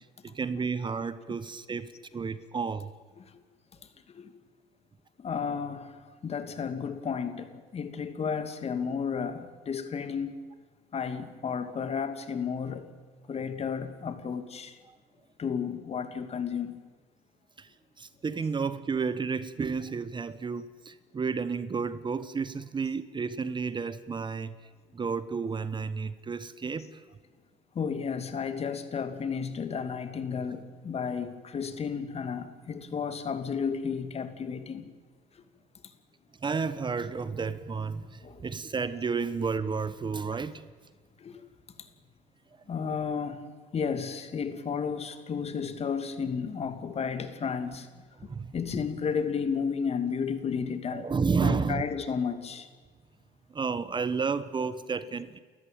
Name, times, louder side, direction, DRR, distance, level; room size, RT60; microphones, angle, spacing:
voice 1, 0.0-2.9 14.9-15.0 17.6-17.7 18.0-24.6 24.9-27.0 36.4-40.6 48.3-48.5 50.9-51.8 53.5-55.4, right 5 dB, 30° right, 14 dB, 1.2 m, -31 dB
voice 2, 5.2-10.4 10.9-12.9 13.3-14.8 15.4-16.7 27.7-34.9 38.2-38.5 41.2-41.4 42.7-43.4 43.7-47.9 48.5-51.1 51.4-52.7, left 6 dB, 40° left, 9 dB, 2.5 m, -33 dB
30.0 x 14.0 x 9.2 m, 1.4 s
supercardioid pair, 80°, 16 cm